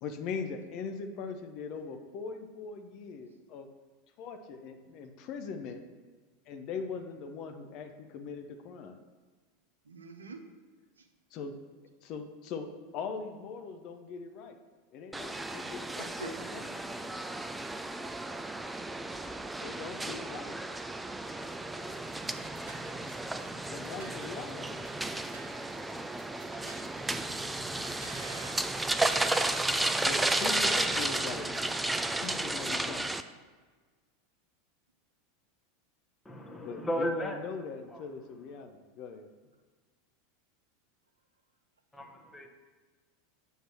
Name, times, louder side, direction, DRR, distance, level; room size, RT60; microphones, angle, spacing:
voice 1, 0.0-3.7 4.2-5.8 6.5-9.0 11.3-11.5 12.0-14.6 14.9-17.1 19.6-20.6 23.7-24.8 30.0-31.5 32.2-33.1 36.6-39.3, left 5 dB, 45° left, 7 dB, 0.6 m, -41 dB
voice 2, 9.9-10.4 16.0-16.3 27.7-29.1, right 4 dB, 80° right, 6 dB, 0.6 m, -48 dB
sound 1, 15.1-33.2, right 2 dB, 10° right, 0.3 m, -33 dB
sound 2, 21.6-32.0, right 3 dB, 60° right, 1.2 m, -55 dB
voice 3, 36.2-37.4 37.9-38.0 41.9-42.5, equal, 10° left, 2 dB, 0.9 m, -35 dB
7.6 x 2.8 x 6.0 m, 1.4 s
figure-of-eight pair, 85°, 0 cm